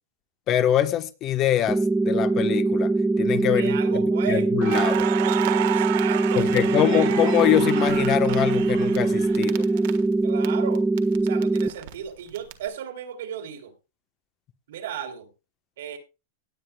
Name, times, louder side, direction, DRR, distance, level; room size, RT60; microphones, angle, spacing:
voice 1, 0.5-3.8 4.3-5.1 6.4-9.6, left 11 dB, 35° left, 1.1 m, -24 dB
sound 1, 1.7-11.7, right 2 dB, 5° right, 0.9 m, -22 dB
voice 2, 3.5-4.5 5.5-7.2 10.2-10.8 11.2-13.7 14.7-15.3 15.8-16.0, right 9 dB, 80° right, 3.1 m, -35 dB
Crackle, 4.6-10.5 10.7-12.5, right 14 dB, 65° right, 1.5 m, -31 dB
18.0 x 9.0 x 2.3 m
supercardioid pair, 135°, 0 cm